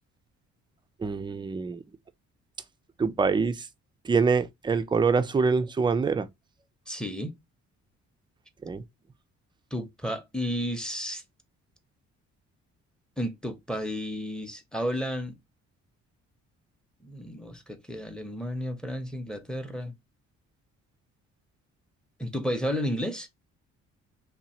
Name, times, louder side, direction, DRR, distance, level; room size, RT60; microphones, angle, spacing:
voice 1, 1.0-1.8 3.0-3.7 4.0-6.3 8.6-8.8, right 5 dB, 15° right, 0.4 m, -25 dB
voice 2, 6.9-7.4 9.7-11.2 13.2-15.4 17.0-19.9 22.2-23.3, equal, 5° left, 0.7 m, -32 dB
2.9 x 2.3 x 4.1 m
cardioid pair, 90°, 30 cm